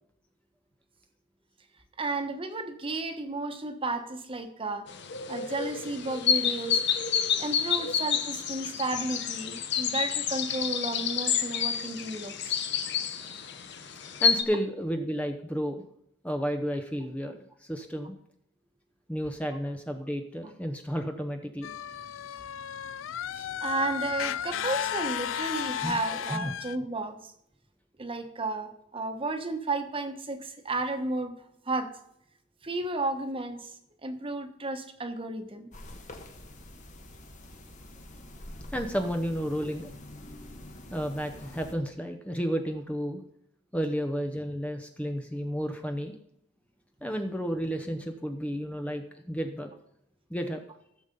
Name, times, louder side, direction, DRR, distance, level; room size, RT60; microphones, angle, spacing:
voice 1, 2.0-4.9 5.3-6.8 7.4-12.6 23.3-27.2 28.0-31.3 31.7-31.9 32.6-33.7 34.0-35.7, right 2 dB, 30° right, 7 dB, 1.3 m, -33 dB
sound 1, 4.9-14.4, left 7 dB, 60° left, 1.0 m, -29 dB
voice 2, 14.2-15.8 16.2-18.2 19.1-21.7 23.5-23.6 25.8-26.0 26.3-26.5 38.7-39.9 40.9-43.2 43.7-46.1 47.0-49.7 50.3-50.6, equal, 5° left, 5 dB, 0.8 m, -32 dB
sound 2, 21.6-26.8, left 9 dB, 90° left, 0.4 m, -33 dB
sound 3, 35.7-41.7, left 1 dB, 40° left, 1.4 m, -46 dB
16.0 x 7.1 x 5.4 m, 0.73 s
head